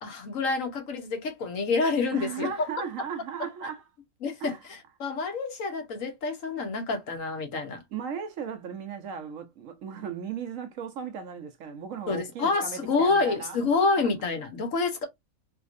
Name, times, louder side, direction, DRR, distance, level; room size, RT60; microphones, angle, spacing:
voice 1, 0.0-2.5 4.2-7.8 12.1-15.1, left 4 dB, 65° left, 1.3 m, -28 dB
voice 2, 2.1-3.8 4.4-4.6 7.9-13.6, right 7 dB, 70° right, 1.0 m, -36 dB
3.4 x 3.0 x 2.5 m
omnidirectional pair, 1.5 m